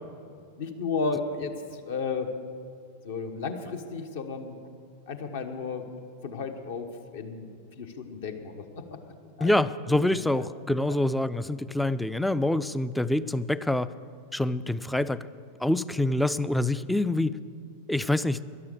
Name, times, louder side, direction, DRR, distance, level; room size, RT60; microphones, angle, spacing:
voice 1, 0.6-1.5 1.8-2.3 3.0-4.6 5.1-5.9 6.2-7.5 7.8-9.0 9.4-9.5 10.1-10.4, left 4 dB, 55° left, 6 dB, 1.2 m, -33 dB
voice 2, 9.4-13.9 14.3-15.2 15.6-17.4 17.9-18.4, left 1 dB, 5° left, 16 dB, 0.4 m, -26 dB
12.5 x 11.5 x 6.6 m, 2.4 s
figure-of-eight pair, 90°, 0 cm